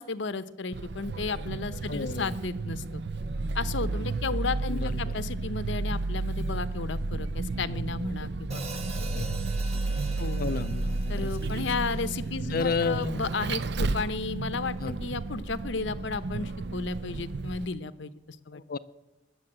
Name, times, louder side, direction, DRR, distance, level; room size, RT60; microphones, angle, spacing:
voice 1, 0.0-3.0 3.5-8.6 10.2-10.5 11.1-18.1 18.5-18.6, left 4 dB, 70° left, 14 dB, 0.7 m, -33 dB
Vehicle, 0.7-17.7, right 3 dB, 60° right, 0.5 m, -32 dB
voice 2, 1.9-2.4 4.7-5.1 9.1-9.3 10.4-11.6 12.5-13.2 14.8-14.9 18.5-18.8, left 4 dB, 50° left, 13 dB, 0.4 m, -32 dB
Hi-hat, 8.5-12.7, right 3 dB, 35° right, 1.8 m, -44 dB
20.5 x 7.0 x 8.8 m, 1.0 s
head